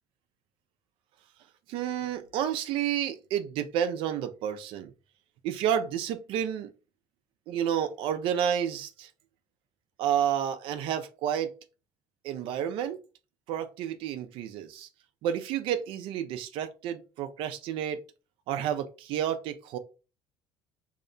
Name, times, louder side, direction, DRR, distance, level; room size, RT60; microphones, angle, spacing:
voice 1, 1.7-4.9 5.4-6.7 7.5-9.1 10.0-11.6 12.2-13.0 13.5-14.9 15.2-18.0 18.5-19.8, right 9 dB, 70° right, 0.4 m, -30 dB
2.7 x 2.1 x 2.5 m
supercardioid pair, 80°, 9 cm